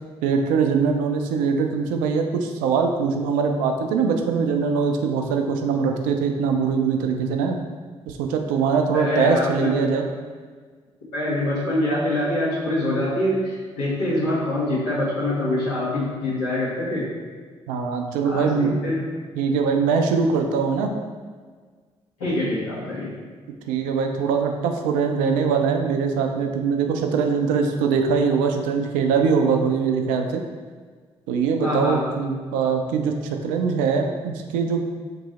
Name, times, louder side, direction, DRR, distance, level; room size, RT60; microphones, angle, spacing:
voice 1, 0.2-7.6 8.1-10.1 17.7-18.8 19.4-20.9 23.7-30.4 31.3-34.9, right 5 dB, 65° right, 4 dB, 0.4 m, -22 dB
voice 2, 8.9-10.1 11.1-17.1 18.2-19.0 22.2-23.1 31.6-32.0, left 1 dB, 75° left, -9 dB, 1.3 m, -24 dB
3.0 x 2.6 x 4.1 m, 1.5 s
figure-of-eight pair, 40°, 15 cm